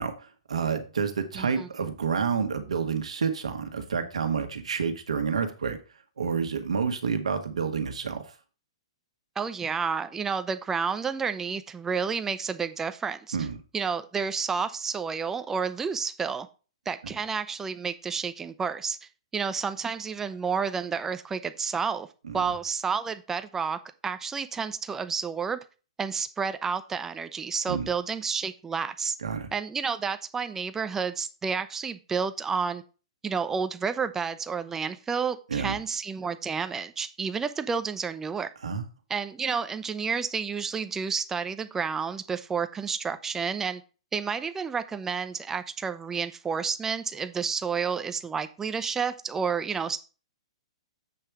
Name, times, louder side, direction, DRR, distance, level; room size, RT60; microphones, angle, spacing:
voice 1, 0.0-5.8 6.2-8.3 13.3-13.6 22.2-22.4 27.7-27.9 29.2-29.5 35.5-35.8 38.6-38.9, right 6 dB, 90° right, 1.3 m, -29 dB
voice 2, 1.3-1.7 9.4-13.5 13.7-16.5 16.9-22.1 22.3-25.6 26.0-29.2 29.5-32.8 33.2-38.5 39.1-43.8 44.1-50.0, right 6 dB, 10° right, 0.6 m, -30 dB
7.7 x 3.3 x 6.0 m
hypercardioid pair, 140°, 3 cm